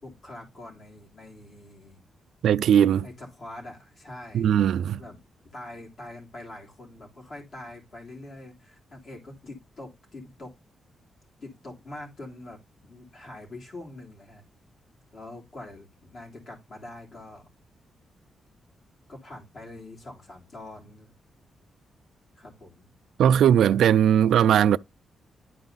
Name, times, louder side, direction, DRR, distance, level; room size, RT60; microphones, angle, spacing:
voice 1, 0.0-2.0 3.0-4.6 5.0-5.2 5.4-10.5 11.4-14.4 15.1-17.5 19.1-21.1 22.4-22.9, left 2 dB, 45° left, 3.4 m, -44 dB
voice 2, 2.4-3.0 4.3-5.0 23.2-24.8, right 9 dB, 85° right, 0.4 m, -19 dB
11.5 x 4.6 x 4.0 m
wide cardioid pair, 150°, 0 cm